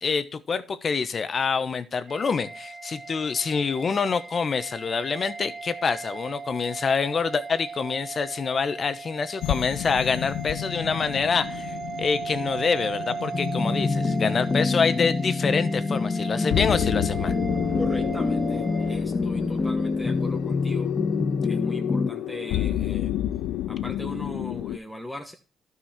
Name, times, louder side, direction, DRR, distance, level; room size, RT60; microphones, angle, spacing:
voice 1, 0.0-17.3, left 5 dB, 45° left, 13 dB, 1.0 m, -26 dB
sound 1, 2.1-19.0, right 5 dB, 25° right, 0.8 m, -38 dB
sound 2, 9.4-24.8, left 13 dB, 90° left, 0.5 m, -31 dB
sound 3, 13.3-22.1, left 3 dB, 25° left, 0.4 m, -26 dB
voice 2, 17.8-20.9 21.4-23.1 23.7-25.3, left 1 dB, 5° left, 3 dB, 1.3 m, -39 dB
12.5 x 5.6 x 4.3 m, 0.35 s
cardioid pair, 90°, 0 cm